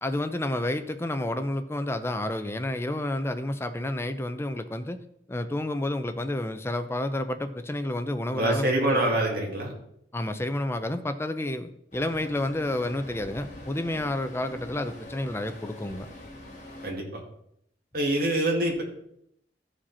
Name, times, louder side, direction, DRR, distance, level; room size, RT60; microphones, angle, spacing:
voice 1, 0.0-5.0 5.3-9.0 10.1-16.1, left 1 dB, 15° left, 9 dB, 0.6 m, -30 dB
voice 2, 8.3-9.7 16.8-17.2 17.9-18.8, right 1 dB, 60° right, -1 dB, 2.4 m, -25 dB
Traffic noise roadway noise, 11.9-16.9, left 1 dB, 45° left, 2.0 m, -44 dB
14.0 x 5.1 x 4.3 m, 0.75 s
head